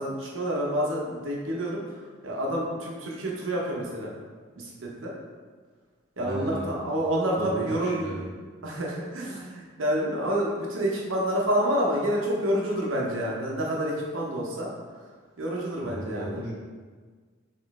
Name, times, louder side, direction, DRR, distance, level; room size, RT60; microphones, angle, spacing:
voice 1, 0.0-1.8 2.2-4.1 4.5-5.1 6.2-8.3 8.6-14.7 15.4-16.4, equal, 80° right, -3 dB, 1.0 m, -28 dB
voice 2, 6.2-6.7 7.4-8.2 15.8-16.5, right 1 dB, 55° right, -7 dB, 1.4 m, -35 dB
4.3 x 3.1 x 3.6 m, 1.5 s
head